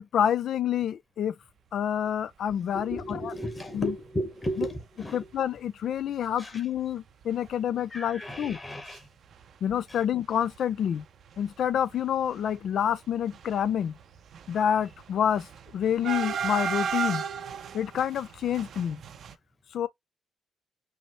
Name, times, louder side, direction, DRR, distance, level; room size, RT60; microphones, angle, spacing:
voice 1, 0.0-1.3 1.7-3.3 3.7-3.9 4.6-4.7 5.1-8.6 9.6-11.0 11.4-14.0 14.5-15.5 15.7-17.2 17.7-19.0 19.7-19.9, left 9 dB, 65° left, 0.3 m, -28 dB
voice 2, 2.7-5.3 6.4-6.6 7.9-9.1 9.9-10.0, equal, 20° left, 1.4 m, -34 dB
sound 1, 3.4-3.6 4.1-4.2 4.3-4.5 5.3-5.4 5.8-6.0 6.3-6.4 6.8-9.0 9.2-10.0 10.2-19.3, right 7 dB, 65° right, 0.5 m, -36 dB
5.4 x 2.0 x 3.0 m
cardioid pair, 90°, 0 cm